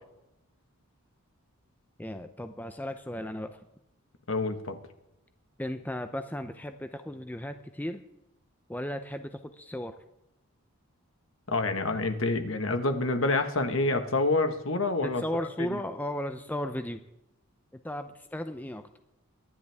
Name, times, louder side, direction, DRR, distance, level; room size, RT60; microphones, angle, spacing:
voice 1, 2.0-3.6 5.6-8.0 8.7-9.9 15.0-17.0 17.8-18.8, left 1 dB, 10° left, 8 dB, 0.6 m, -35 dB
voice 2, 4.3-4.8 11.5-15.7, left 2 dB, 65° left, 7 dB, 1.6 m, -27 dB
24.5 x 11.0 x 3.6 m, 0.86 s
head